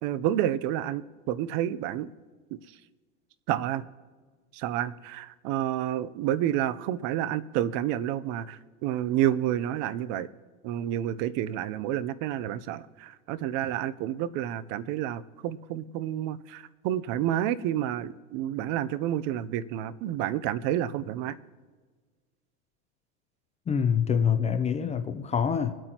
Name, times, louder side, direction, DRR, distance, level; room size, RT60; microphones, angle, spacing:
voice 1, 0.0-2.1 2.5-2.6 3.5-3.8 4.5-10.3 10.6-21.4, right 12 dB, 45° right, 17 dB, 0.7 m, -29 dB
voice 2, 23.7-25.7, left 7 dB, 15° left, 8 dB, 0.5 m, -25 dB
23.5 x 8.9 x 2.9 m, 1.4 s
supercardioid pair, 120°, 41 cm